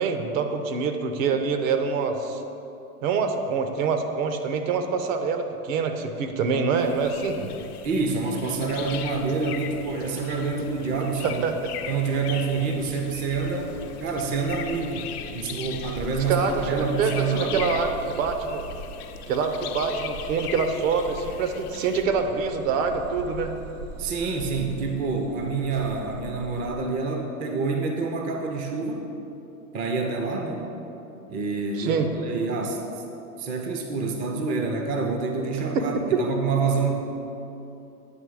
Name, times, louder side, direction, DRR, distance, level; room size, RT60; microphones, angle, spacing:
voice 1, 0.0-2.4 3.0-7.5 11.2-11.7 16.3-16.7 17.0-18.6 19.3-23.5 31.8-32.1 35.6-35.8 36.1-36.2, right 5 dB, 60° right, 7 dB, 0.8 m, -25 dB
sound 1, 6.8-22.0, left 9 dB, 85° left, 0.6 m, -40 dB
sound 2, 6.9-26.7, right 2 dB, 85° right, 1.3 m, -42 dB
voice 2, 7.8-11.4 11.9-13.7 14.0-17.7 24.0-29.0 29.7-30.7 31.3-32.8 33.4-36.9, right 4 dB, 20° right, 3 dB, 0.4 m, -27 dB
9.1 x 3.2 x 6.2 m, 2.8 s
hypercardioid pair, 120°, 44 cm